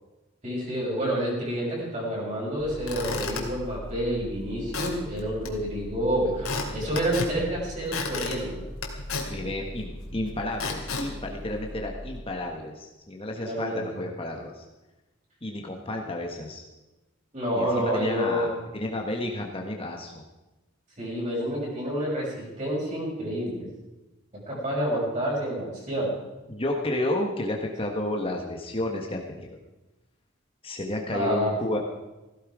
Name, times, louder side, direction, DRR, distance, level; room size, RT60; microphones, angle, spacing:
voice 1, 0.4-8.6 13.4-14.0 17.3-18.5 21.0-23.7 24.5-26.1 31.1-31.5, equal, 35° right, -4 dB, 6.8 m, -28 dB
Squeak / Wood, 2.6-12.2, left 3 dB, 90° left, 2.7 m, -35 dB
voice 2, 9.3-14.6 15.4-16.6 17.5-20.2 26.5-29.5 30.6-31.8, left 1 dB, 25° left, 1 dB, 1.4 m, -31 dB
16.5 x 16.0 x 4.9 m, 1.1 s
head